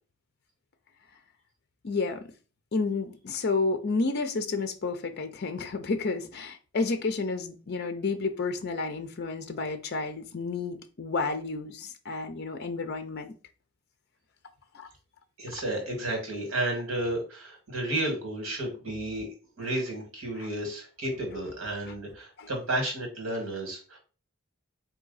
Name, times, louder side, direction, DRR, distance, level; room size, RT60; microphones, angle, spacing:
voice 1, 1.8-2.2 2.7-13.3 14.7-14.9 20.4-20.5 22.4-22.5, left 3 dB, 50° left, 0.5 m, -31 dB
voice 2, 15.4-19.3 19.6-24.0, right 1 dB, 80° right, 1.7 m, -32 dB
3.8 x 2.8 x 3.9 m
head